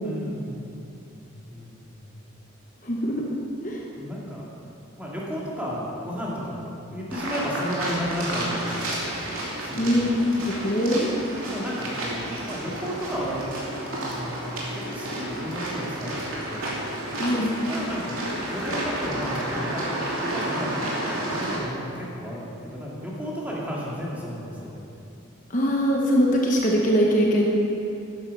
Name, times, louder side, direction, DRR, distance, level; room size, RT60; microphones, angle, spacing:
voice 1, 0.0-2.1 4.0-4.5 5.0-9.2 9.6-10.0 11.4-13.6 14.0-16.7 17.3-24.8, equal, 5° right, -6 dB, 2.2 m, -33 dB
voice 2, 2.8-3.3 3.6-3.8 9.8-10.1 10.6-11.1 17.2-17.5 25.5-27.5, equal, 40° left, -2 dB, 1.1 m, -22 dB
sound 1, 7.1-21.6, right 1 dB, 85° right, 2.8 m, -31 dB
13.0 x 9.6 x 5.5 m, 2.8 s
head